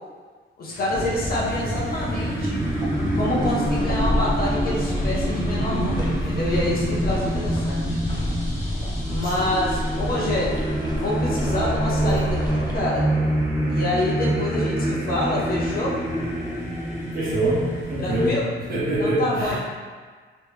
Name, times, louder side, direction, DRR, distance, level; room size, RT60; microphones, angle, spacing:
voice 1, 0.6-2.6 3.1-8.2 9.1-10.6 10.9-13.1 13.7-15.9 18.0-18.5 19.0-19.6, left 1 dB, 50° left, -5 dB, 0.7 m, -27 dB
sound 1, 0.7-18.3, right 1 dB, 10° right, 0.9 m, -27 dB
sound 2, 0.9-12.8, left 1 dB, 20° left, 0.5 m, -29 dB
voice 2, 17.1-19.6, right 1 dB, 45° right, -9 dB, 1.3 m, -25 dB
3.4 x 3.0 x 3.2 m, 1.5 s
wide cardioid pair, 165°, 21 cm